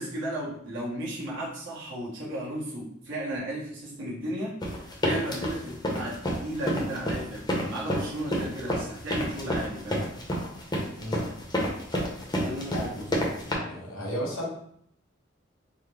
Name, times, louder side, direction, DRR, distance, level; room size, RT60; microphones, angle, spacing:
voice 1, 0.0-10.0 12.4-13.3, right 1 dB, 70° right, -7 dB, 1.1 m, -35 dB
sound 1, 4.6-13.5, equal, 20° left, 0.6 m, -29 dB
voice 2, 12.7-13.2 13.5-14.5, equal, 80° left, -4 dB, 1.3 m, -34 dB
3.8 x 2.0 x 3.2 m, 0.68 s
head